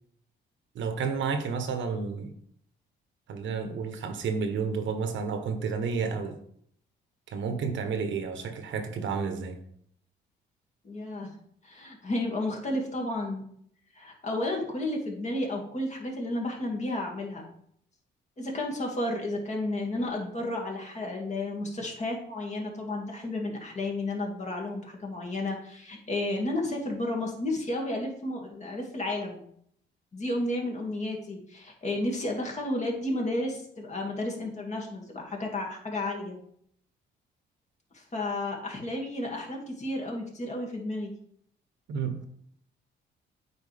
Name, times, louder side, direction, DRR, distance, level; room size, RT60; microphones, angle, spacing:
voice 1, 0.7-2.3 3.3-6.4 7.3-9.6 41.9-42.2, right 5 dB, 70° right, 1.1 m, -31 dB
voice 2, 10.8-11.3 11.6-13.4 13.9-17.5 18.4-29.4 30.1-36.4 37.9-41.1, left 1 dB, 35° left, 2.1 m, -32 dB
8.5 x 4.7 x 3.4 m
cardioid pair, 90°, 20 cm